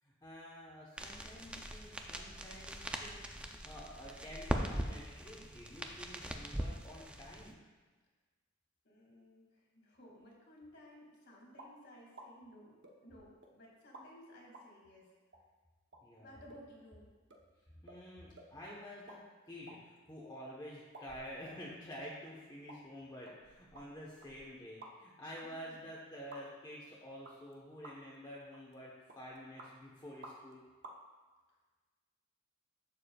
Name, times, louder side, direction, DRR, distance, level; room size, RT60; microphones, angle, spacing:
voice 1, 0.0-7.6 16.0-16.4 17.8-30.6, equal, 20° left, -6 dB, 1.1 m, -49 dB
sound 1, 1.0-7.5, equal, 5° right, 0.5 m, -41 dB
voice 2, 8.8-15.1 16.1-17.1 25.4-25.8, equal, 60° left, -2 dB, 2.4 m, -57 dB
sound 2, 11.6-11.7 12.2-12.3 12.8-13.5 13.9-14.1 14.5-14.7 15.3-15.4 15.9-16.0 16.5-16.6 16.9-17.0 17.3-17.4 17.9-18.0 18.4-18.5 18.9-19.2 19.5-20.4 20.9-21.6 22.0-22.1 22.7-22.8 23.3-25.1 25.4-25.5 26.3-26.4 27.2-27.5 27.8-28.2 28.5-28.7 29.1-29.7 30.2-30.5 30.8-31.0, right 2 dB, 60° right, 1.0 m, -54 dB
11.0 x 7.3 x 2.4 m, 1.3 s
head